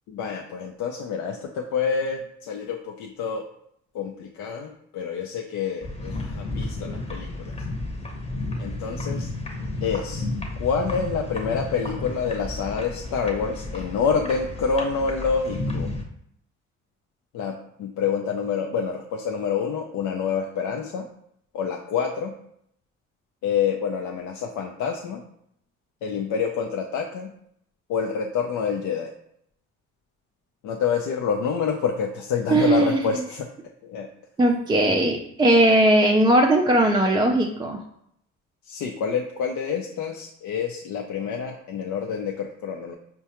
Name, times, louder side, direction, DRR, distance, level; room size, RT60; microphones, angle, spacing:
voice 1, 0.1-3.4 3.9-7.6 8.6-9.3 9.8-10.3 10.6-15.9 17.3-21.1 21.5-22.3 23.4-25.2 26.0-27.3 27.9-29.1 30.6-33.5 33.8-34.1 38.6-42.9, left 6 dB, 75° left, 1 dB, 0.5 m, -27 dB
sound 1, 5.8-16.0, left 2 dB, 20° left, 0.8 m, -32 dB
voice 2, 32.5-33.0 34.4-37.8, right 1 dB, 15° right, 1 dB, 0.3 m, -19 dB
4.6 x 2.2 x 2.8 m, 0.71 s
cardioid pair, 90°, 30 cm